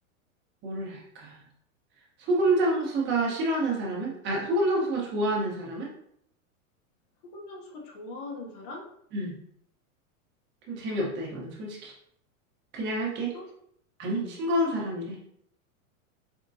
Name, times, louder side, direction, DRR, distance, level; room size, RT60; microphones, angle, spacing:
voice 1, 0.6-1.4 2.2-5.9 9.1-9.4 10.7-11.9 12.7-13.4 14.0-15.2, right 1 dB, 25° right, -3 dB, 0.9 m, -28 dB
voice 2, 7.3-8.9 13.3-13.4 14.1-14.4, left 2 dB, 45° left, 1 dB, 0.8 m, -41 dB
4.5 x 2.1 x 2.6 m, 0.69 s
supercardioid pair, 145°, 42 cm